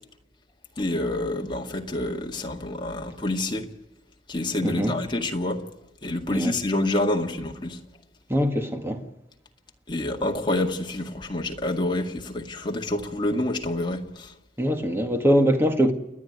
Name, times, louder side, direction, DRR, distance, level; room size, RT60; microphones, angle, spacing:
voice 1, 0.8-3.7 4.3-5.6 6.0-7.8 9.9-14.3, left 1 dB, 25° left, 2.1 m, -27 dB
voice 2, 4.6-5.0 6.3-6.5 8.3-9.0 14.6-15.9, equal, 15° right, 2.0 m, -22 dB
29.5 x 10.5 x 9.4 m
head